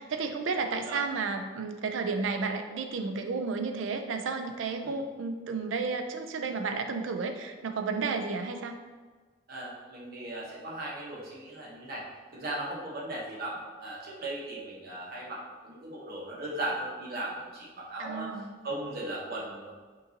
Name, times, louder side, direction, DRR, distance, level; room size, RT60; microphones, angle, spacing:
voice 1, 0.0-8.8 18.0-18.5, right 4 dB, 85° right, 6 dB, 0.4 m, -32 dB
voice 2, 9.5-12.0 12.3-18.3 18.6-19.7, right 1 dB, 55° right, -4 dB, 1.0 m, -37 dB
5.3 x 2.6 x 2.8 m, 1.4 s
head